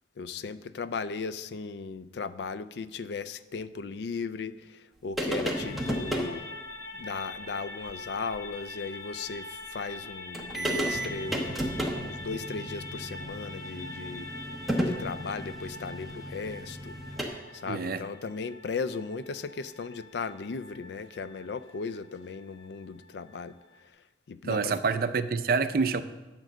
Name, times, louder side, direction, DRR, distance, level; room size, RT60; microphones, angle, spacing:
voice 1, 0.2-6.4 7.0-11.6 11.9-14.3 14.8-17.0 17.5-23.5 24.3-24.7, left 4 dB, 70° left, 0.4 m, -37 dB
sound 1, 5.2-6.3 7.9-8.0 8.3-8.4 10.0-10.1 10.3-17.3, equal, ahead, 0.9 m, -33 dB
sound 2, 5.5-23.9, left 2 dB, 25° left, 1.1 m, -44 dB
voice 2, 17.7-18.0 24.4-26.0, right 5 dB, 55° right, 0.4 m, -27 dB
9.1 x 5.2 x 7.3 m
head